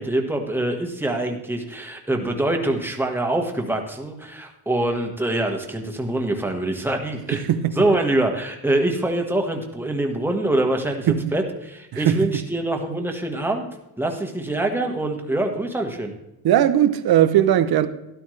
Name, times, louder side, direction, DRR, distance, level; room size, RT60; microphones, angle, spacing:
voice 1, 0.0-7.4 7.7-13.7 14.0-16.1, right 1 dB, 5° right, 1.6 m, -24 dB
voice 2, 7.3-7.7 11.1-11.2 11.9-12.4 16.4-17.9, right 11 dB, 65° right, 0.9 m, -18 dB
13.0 x 12.0 x 3.3 m
cardioid pair, 125°, 40 cm